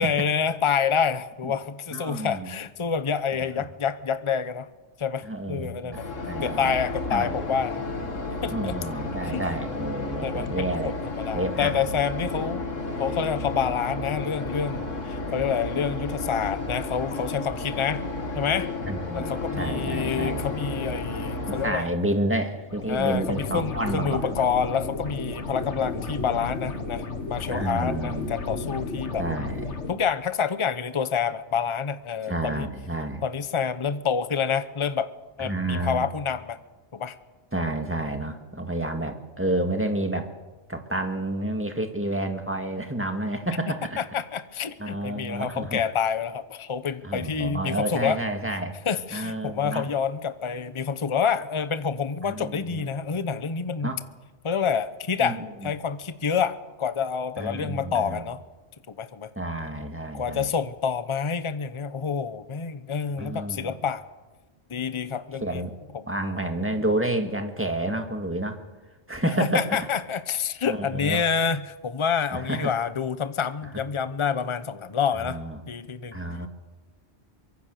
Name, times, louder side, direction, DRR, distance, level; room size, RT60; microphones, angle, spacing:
voice 1, 0.0-4.7 5.0-6.1 6.4-7.8 8.4-8.7 9.2-9.4 10.2-12.6 13.0-18.0 18.3-18.7 19.1-21.9 22.9-29.2 29.9-32.7 33.2-35.1 35.4-36.6 36.9-37.2 44.0-48.2 48.9-53.9 54.4-58.4 59.0-59.3 60.1-64.0 64.7-65.6 65.9-66.0 69.4-75.4 75.7-76.2, left 6 dB, 30° left, 12 dB, 0.8 m, -28 dB
voice 2, 1.9-2.5 5.2-6.8 7.1-7.3 8.5-11.0 11.3-11.8 18.9-19.3 19.6-20.5 21.5-24.3 27.5-28.3 29.2-29.7 32.3-33.2 35.4-36.1 37.5-40.3 40.7-44.0 44.8-45.8 47.0-48.7 49.1-49.9 52.2-52.9 53.8-54.0 55.2-55.7 57.4-58.2 59.4-60.5 63.2-63.7 65.4-65.7 66.1-68.6 69.1-69.8 70.7-71.2 72.3-72.7 75.2-75.6 76.1-76.5, right 1 dB, 10° right, 5 dB, 2.0 m, -29 dB
sound 1, 5.9-21.7, left 2 dB, 90° left, 2.3 m, -32 dB
sound 2, 22.7-29.9, left 3 dB, 70° left, 2.1 m, -33 dB
24.0 x 23.0 x 6.7 m, 1.2 s
omnidirectional pair, 1.3 m